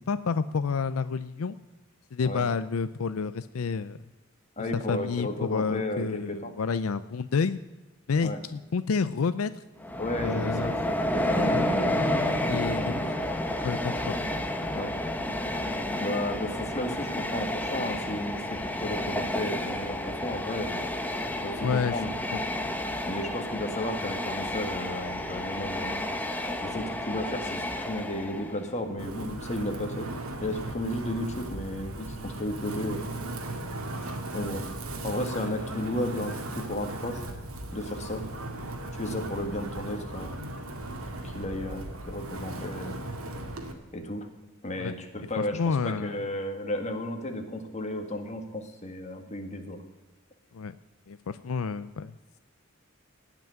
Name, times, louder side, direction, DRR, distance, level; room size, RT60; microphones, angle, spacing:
voice 1, 0.1-1.6 2.1-4.0 4.9-7.6 8.1-9.5 10.2-10.7 11.5-11.6 12.5-13.0 13.6-14.2 21.6-22.0 22.3-22.4 44.8-44.9 45.5-46.1 50.5-50.7 51.1-52.2, left 5 dB, 80° left, 13 dB, 0.5 m, -29 dB
voice 2, 4.6-6.5 8.2-8.4 10.0-13.1 14.7-14.9 16.0-20.8 21.4-22.1 23.1-26.0 26.6-30.1 30.4-33.0 34.3-34.6 35.0-37.2 37.7-38.3 38.9-40.4 41.1-42.9 43.9-44.3 44.6-49.8, left 1 dB, 30° left, 5 dB, 1.8 m, -34 dB
Train, 9.8-28.7, left 1 dB, 10° left, 1.0 m, -31 dB
Wind, 29.0-43.7, right 1 dB, 85° right, 2.1 m, -37 dB
17.5 x 6.1 x 9.2 m, 1.2 s
head